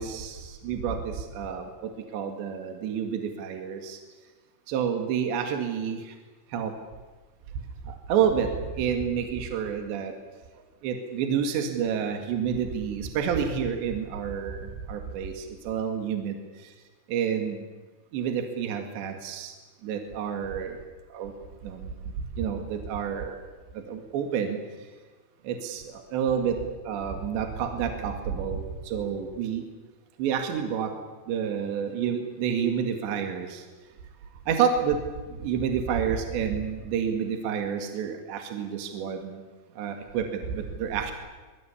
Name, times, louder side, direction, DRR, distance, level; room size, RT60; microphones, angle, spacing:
voice 1, 0.0-4.0 4.7-6.1 6.5-6.7 7.9-8.5 8.8-10.1 10.8-16.4 17.1-17.6 18.1-19.5 19.8-20.8 21.1-21.3 21.6-21.9 22.4-23.4 23.9-24.6 25.4-26.6 26.8-29.6 30.2-30.9 31.3-33.6 34.5-35.0 35.4-39.4 39.8-41.1, right 7 dB, 65° right, 5 dB, 4.1 m, -29 dB
25.0 x 22.5 x 8.4 m, 1.3 s
omnidirectional pair, 5.7 m